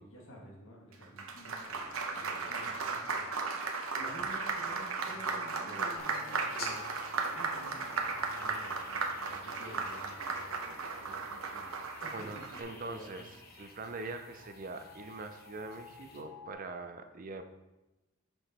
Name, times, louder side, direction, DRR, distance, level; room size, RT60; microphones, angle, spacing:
voice 1, 0.0-3.2 3.9-6.8 7.3-10.5 10.9-13.3, equal, 70° left, -1 dB, 1.6 m, -51 dB
Applause, 0.9-12.6, right 4 dB, 80° right, 0.8 m, -36 dB
sound 1, 3.1-16.5, left 3 dB, 85° left, 2.2 m, -55 dB
sound 2, 6.0-16.2, left 3 dB, 45° left, 0.8 m, -53 dB
voice 2, 12.1-13.3 13.6-17.4, right 3 dB, 40° right, 8 dB, 0.5 m, -43 dB
6.0 x 5.0 x 4.2 m, 1.0 s
head